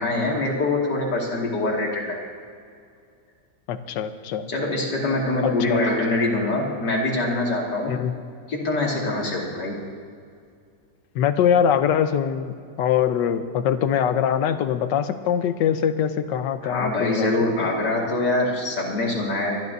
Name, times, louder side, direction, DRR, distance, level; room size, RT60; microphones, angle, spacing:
voice 1, 0.0-2.3 4.5-8.0 8.5-9.8 16.6-19.6, left 2 dB, 70° left, -3 dB, 2.8 m, -24 dB
voice 2, 3.7-4.5 5.4-5.8 7.9-8.1 11.1-17.3 17.6-17.7, left 8 dB, 85° left, 10 dB, 1.4 m, -23 dB
25.5 x 12.0 x 2.7 m, 2.2 s
omnidirectional pair, 1.9 m